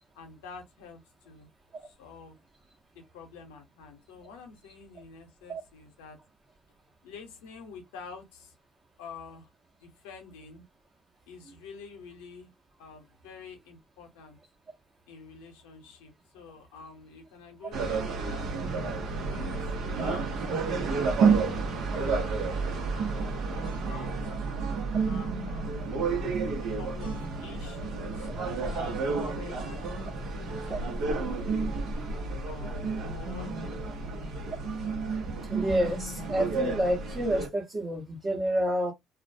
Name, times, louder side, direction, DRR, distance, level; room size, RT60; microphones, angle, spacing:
voice 1, 0.1-1.5 1.8-2.4 2.9-6.2 7.0-8.5 9.0-9.5 9.8-10.6 11.3-12.5 12.8-14.4 15.1-18.5 19.3-22.7 23.0-24.2 24.5-24.7 25.0-25.9 26.6-28.3 28.7-31.5 32.4-34.2, left 5 dB, 85° left, 0.7 m, -48 dB
sound 1, 17.7-37.5, right 4 dB, 70° right, 0.8 m, -30 dB
voice 2, 35.5-38.9, equal, 35° right, 0.9 m, -29 dB
2.3 x 2.1 x 2.6 m
hypercardioid pair, 60°, 0 cm